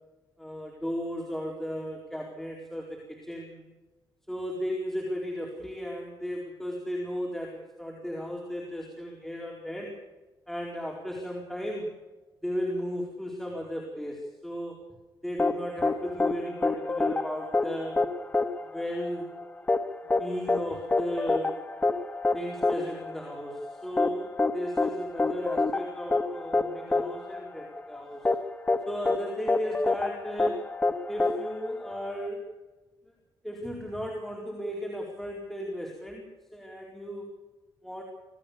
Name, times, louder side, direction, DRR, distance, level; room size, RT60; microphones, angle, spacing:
voice 1, 0.4-3.6 4.3-10.0 10.5-11.9 12.4-14.8 15.2-18.0 18.6-19.3 20.2-21.6 22.3-28.3 28.9-30.7 31.1-32.5 33.4-37.3 37.8-38.0, equal, 5° left, -2 dB, 4.4 m, -35 dB
sound 1, 15.4-32.3, left 3 dB, 20° left, 1.5 m, -28 dB
26.0 x 17.5 x 7.0 m, 1.1 s
cardioid pair, 140°, 8 cm